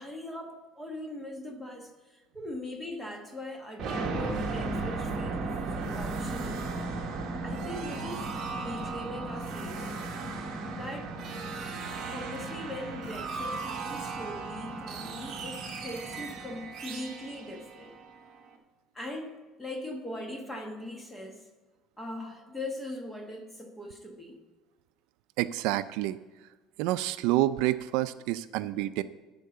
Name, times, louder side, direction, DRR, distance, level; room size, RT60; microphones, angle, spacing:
voice 1, 0.0-6.6 7.4-10.0 10.7-11.2 12.1-17.9 18.9-21.4 22.0-24.4, left 1 dB, 10° left, 3 dB, 1.1 m, -40 dB
sound 1, 3.8-18.5, right 3 dB, 40° right, 1.4 m, -36 dB
sound 2, 8.0-15.5, right 1 dB, 30° left, 3.3 m, -54 dB
voice 2, 25.4-26.2 26.8-29.0, right 15 dB, 70° right, 13 dB, 0.3 m, -28 dB
12.0 x 4.6 x 8.0 m, 1.2 s
cardioid pair, 175°, 0 cm